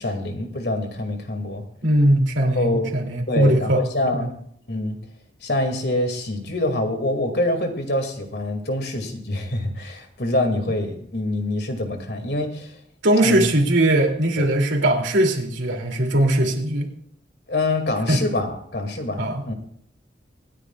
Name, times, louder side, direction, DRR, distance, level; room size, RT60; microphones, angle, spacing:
voice 1, 0.0-1.6 2.4-3.0 3.3-4.3 4.7-5.0 5.4-12.7 13.2-13.4 14.4-14.5 17.5-19.5, left 1 dB, 60° left, 5 dB, 2.3 m, -25 dB
voice 2, 1.8-3.8 4.1-4.3 13.0-16.9 18.1-18.2 19.2-19.5, right 1 dB, 90° right, 2 dB, 2.7 m, -20 dB
25.0 x 10.0 x 2.4 m, 0.66 s
head